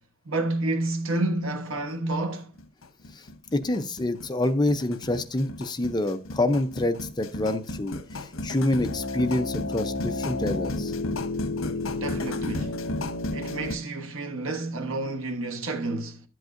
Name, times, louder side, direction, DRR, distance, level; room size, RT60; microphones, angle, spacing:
voice 1, 0.2-2.5 11.9-12.8 13.3-16.2, right 2 dB, 80° right, 1.2 m, -29 dB
sound 1, 1.8-1.9 2.1-2.2 2.6-13.8, left 2 dB, 80° left, 0.9 m, -32 dB
voice 2, 3.5-10.9, left 1 dB, 20° left, 0.6 m, -27 dB
11.5 x 7.8 x 2.5 m
head